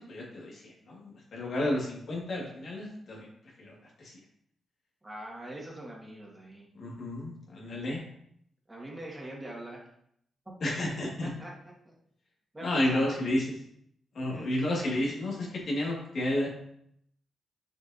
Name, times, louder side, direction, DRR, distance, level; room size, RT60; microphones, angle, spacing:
voice 1, 0.0-3.3 3.6-4.1 6.7-8.0 10.6-11.3 12.6-13.5 14.1-16.5, left 1 dB, 65° left, -4 dB, 2.2 m, -31 dB
voice 2, 5.0-6.7 8.7-9.8 11.2-11.5 11.9-12.0 12.5-13.4 14.2-14.6, right 1 dB, 20° right, -3 dB, 2.0 m, -43 dB
6.6 x 5.1 x 2.8 m, 0.71 s
cardioid pair, 60°, 0 cm